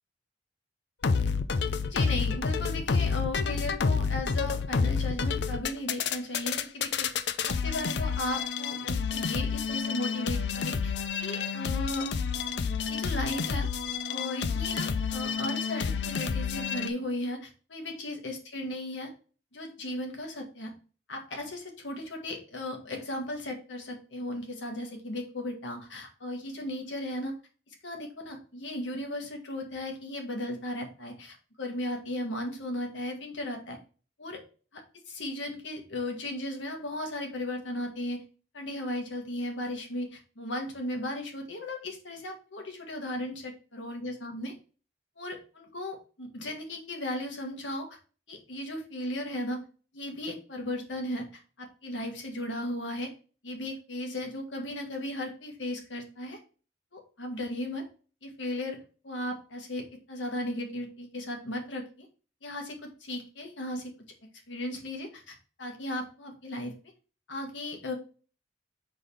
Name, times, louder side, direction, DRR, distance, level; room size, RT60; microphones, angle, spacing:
sound 1, 1.0-16.9, left 5 dB, 70° left, 0.5 m, -29 dB
voice 1, 1.9-7.1 7.5-10.9 11.2-12.1 12.8-13.7 14.1-19.1 19.5-20.7 21.1-27.3 27.8-33.8 34.2-34.4 34.7-34.8 35.1-38.2 38.5-44.5 45.2-48.0 48.3-49.6 49.9-53.1 53.4-56.4 56.9-57.8 58.2-58.8 59.0-62.1 62.4-63.9 64.5-66.7 67.3-67.9, left 1 dB, 85° left, 3 dB, 1.6 m, -36 dB
5.1 x 3.9 x 5.5 m, 0.37 s
head